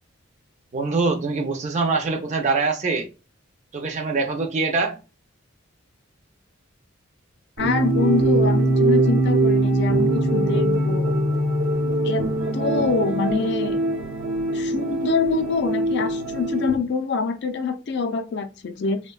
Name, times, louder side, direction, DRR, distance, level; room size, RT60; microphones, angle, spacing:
voice 1, 0.7-3.1 3.7-5.0, right 4 dB, 35° right, 0.4 m, -24 dB
voice 2, 7.6-11.2 12.0-12.3 12.5-13.8 14.5-19.0, left 4 dB, 55° left, 0.4 m, -25 dB
sound 1, 7.6-16.7, right 2 dB, 85° right, 0.7 m, -22 dB
3.3 x 2.1 x 2.2 m
head